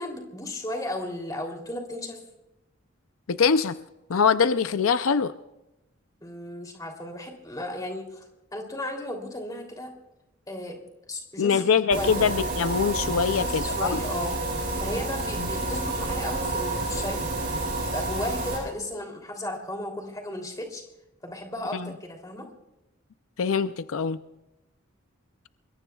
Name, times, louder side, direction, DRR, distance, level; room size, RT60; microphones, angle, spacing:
voice 1, 0.0-2.2 6.2-8.2 8.5-9.9 10.5-10.8 11.1-11.6 11.9-12.3 13.2-14.4 14.8-17.3 17.9-20.8 21.2-22.5, left 1 dB, 15° left, 2 dB, 3.0 m, -34 dB
voice 2, 3.3-3.8 4.1-5.3 11.4-14.0 15.4-15.5 21.7-21.9 23.4-24.2, left 6 dB, 80° left, 12 dB, 0.5 m, -23 dB
sound 1, 11.9-18.6, right 2 dB, 40° right, 6.6 m, -29 dB
28.5 x 22.0 x 2.3 m, 0.94 s
head